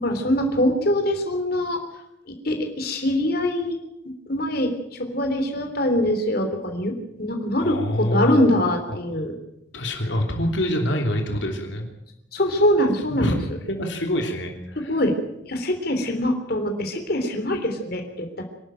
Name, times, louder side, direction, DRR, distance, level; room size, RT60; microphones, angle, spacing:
voice 1, 0.0-1.8 2.4-3.8 4.3-4.7 5.1-6.9 7.2-9.3 12.3-13.4 14.9-15.1 15.5-18.4, left 1 dB, 55° left, 4 dB, 3.3 m, -23 dB
voice 2, 7.6-8.4 8.9-9.0 9.7-11.9 13.1-15.0, equal, 80° left, 3 dB, 3.2 m, -26 dB
25.5 x 12.0 x 9.1 m, 0.85 s
head